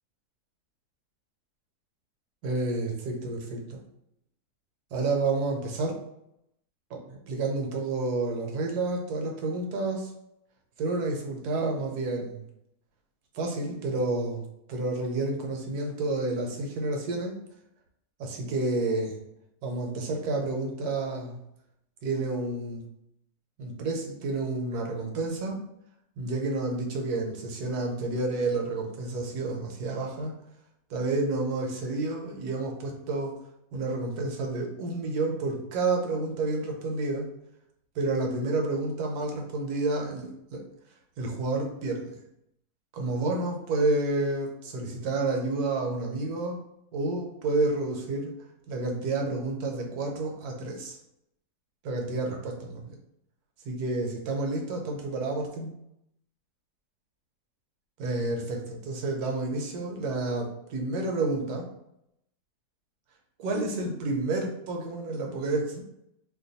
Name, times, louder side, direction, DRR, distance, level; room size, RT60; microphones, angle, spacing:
voice 1, 2.4-3.8 4.9-6.0 6.9-10.1 10.8-12.4 13.3-17.4 18.2-19.2 19.6-21.4 22.0-22.8 23.6-25.6 26.2-30.3 30.9-33.3 33.7-37.3 37.9-40.6 41.2-42.2 42.9-46.6 46.9-48.3 48.7-51.0 51.8-53.0 53.6-55.7 58.0-61.7 63.4-65.8, right 2 dB, 80° right, 1 dB, 1.2 m, -30 dB
2.9 x 2.2 x 4.0 m, 0.80 s
omnidirectional pair, 1.7 m